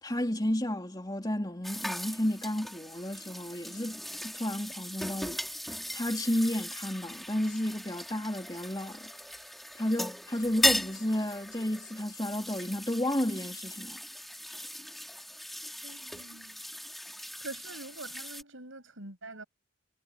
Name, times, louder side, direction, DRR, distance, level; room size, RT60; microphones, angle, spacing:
voice 1, 0.0-5.4 5.9-9.1 9.7-14.0, left 1 dB, 20° left, 3.1 m, -32 dB
sound 1, 1.6-18.4, equal, ahead, 2.9 m, -37 dB
voice 2, 15.8-16.6 17.4-19.4, right 2 dB, 75° right, 6.6 m, -45 dB
head